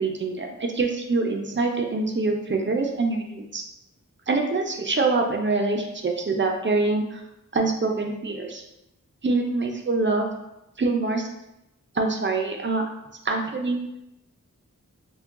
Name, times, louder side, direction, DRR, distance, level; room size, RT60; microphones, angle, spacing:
voice 1, 0.0-3.6 4.3-7.2 7.5-8.6 9.2-10.3 10.8-11.3 11.9-12.8 13.2-13.8, right 3 dB, 40° right, 2 dB, 0.5 m, -25 dB
2.2 x 2.2 x 3.6 m, 0.88 s
wide cardioid pair, 45°, 31 cm